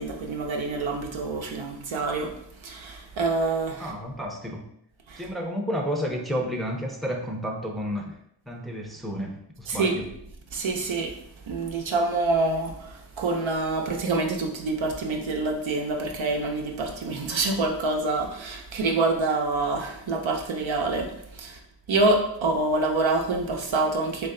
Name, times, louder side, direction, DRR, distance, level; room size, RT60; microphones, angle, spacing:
voice 1, 0.0-3.9 5.1-5.3 9.7-10.1 10.5-11.1 11.5-21.6 21.9-24.3, right 3 dB, 85° right, 1 dB, 0.7 m, -26 dB
voice 2, 3.8-4.7 5.2-8.2 8.5-10.1, equal, ahead, 1 dB, 0.5 m, -31 dB
3.2 x 2.5 x 3.7 m, 0.73 s
wide cardioid pair, 65°, 45 cm